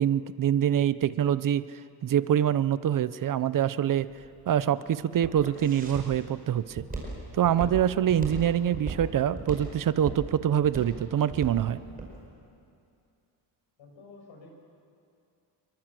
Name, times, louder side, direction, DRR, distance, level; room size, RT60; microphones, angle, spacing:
voice 1, 0.0-1.6 2.0-4.1 4.5-6.8 7.3-11.8, right 10 dB, 50° right, 16 dB, 0.6 m, -25 dB
Walk footsteps, 4.0-12.1, right 3 dB, 20° right, 4.9 m, -37 dB
voice 2, 13.8-14.6, left 3 dB, 85° left, 1 dB, 7.0 m, -50 dB
27.0 x 23.0 x 7.5 m, 2.5 s
wide cardioid pair, 170°, 44 cm